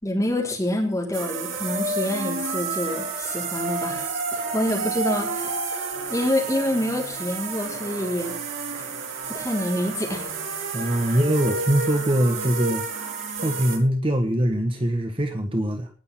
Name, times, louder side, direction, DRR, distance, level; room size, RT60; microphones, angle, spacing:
voice 1, 0.0-5.5 6.1-8.3 9.3-10.3 11.1-11.2, left 1 dB, 15° left, -1 dB, 4.5 m, -27 dB
sound 1, 1.1-13.8, right 4 dB, 85° right, 4.6 m, -30 dB
voice 2, 10.7-12.8 13.4-15.9, right 1 dB, 25° right, 5 dB, 1.4 m, -22 dB
19.5 x 6.8 x 5.8 m, 0.39 s
head